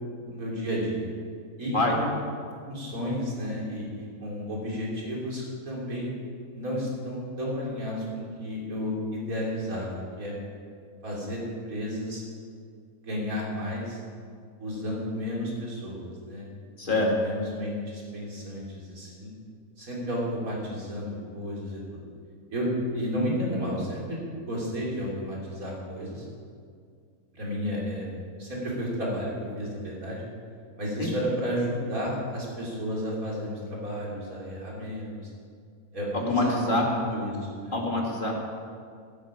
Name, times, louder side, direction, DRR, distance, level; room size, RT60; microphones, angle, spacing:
voice 1, 0.3-1.1 1.6-2.1 2.6-6.1 6.5-9.9 10.2-10.3 11.0-12.2 13.0-14.0 14.6-16.5 16.8-19.3 19.8-22.0 22.5-22.7 22.9-24.2 24.5-26.3 27.3-28.1 28.4-30.2 30.8-35.3 35.9-37.8, equal, 70° right, -4 dB, 3.8 m, -32 dB
voice 2, 16.8-17.1 31.0-31.1 36.1-36.8 37.7-38.3, left 2 dB, 35° left, -1 dB, 2.3 m, -25 dB
17.5 x 9.7 x 5.0 m, 2.2 s
omnidirectional pair, 1.5 m